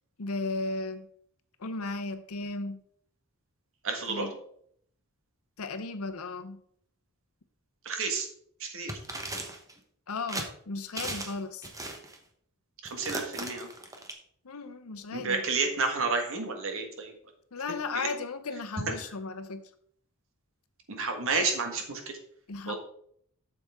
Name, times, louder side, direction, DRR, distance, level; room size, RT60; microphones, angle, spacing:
voice 1, 0.2-1.1 1.6-2.8 4.1-4.3 5.6-6.6 10.1-11.7 14.4-15.4 17.5-19.6 22.5-22.7, left 3 dB, 70° left, 9 dB, 0.8 m, -35 dB
voice 2, 3.8-4.3 7.8-8.3 8.6-8.9 12.8-13.7 15.1-17.1 17.9-18.1 20.9-22.2 22.7-22.8, right 4 dB, 65° right, 4 dB, 1.5 m, -30 dB
sound 1, 8.9-9.7 10.3-10.5 11.0-11.4 11.6-12.2 12.9-14.1, right 2 dB, 15° right, 1.0 m, -37 dB
8.3 x 6.8 x 3.6 m, 0.66 s
head